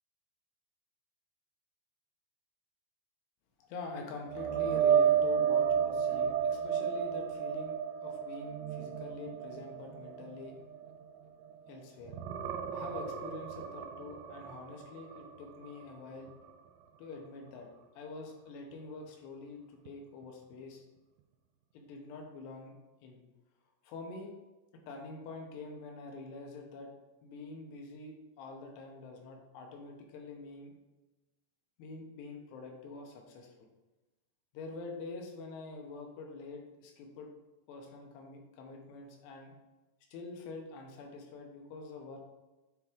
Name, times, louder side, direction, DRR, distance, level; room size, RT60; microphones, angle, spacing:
voice 1, 3.6-10.6 11.7-12.2 12.7-16.3 17.0-17.7 17.9-20.8 21.7-22.7 23.0-23.2 23.8-24.3 24.9-26.9 27.2-30.7 31.8-33.7 34.5-37.3 37.7-39.5 40.1-42.2, left 3 dB, 90° left, 1 dB, 3.1 m, -46 dB
sound 1, 4.3-11.7 12.0-15.9 16.3-16.5 19.9-20.0, right 8 dB, 80° right, 2.3 m, -32 dB
9.4 x 3.6 x 3.5 m, 1.1 s
omnidirectional pair, 4.7 m